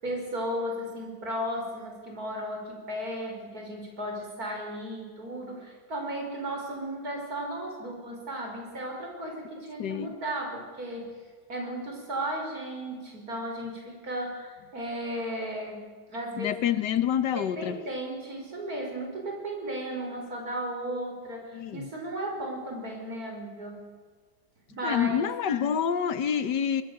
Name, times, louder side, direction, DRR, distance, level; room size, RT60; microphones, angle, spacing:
voice 1, 0.0-11.1 11.5-16.6 17.4-23.9 24.7-25.3, right 1 dB, 60° right, 1 dB, 5.6 m, -35 dB
voice 2, 9.8-10.1 16.4-17.8 21.5-21.9 24.8-26.8, left 8 dB, 80° left, 13 dB, 1.7 m, -27 dB
24.5 x 19.5 x 6.8 m, 1.5 s
omnidirectional pair, 1.8 m